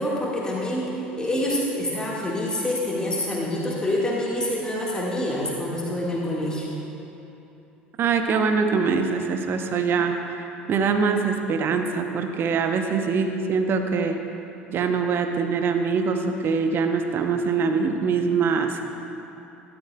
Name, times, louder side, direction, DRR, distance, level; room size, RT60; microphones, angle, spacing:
voice 1, 0.0-6.8, left 1 dB, 15° left, -5 dB, 1.7 m, -26 dB
voice 2, 8.0-14.2 14.7-18.8, right 5 dB, 40° right, 6 dB, 0.7 m, -23 dB
13.0 x 12.5 x 2.3 m, 2.9 s
figure-of-eight pair, 65°, 6 cm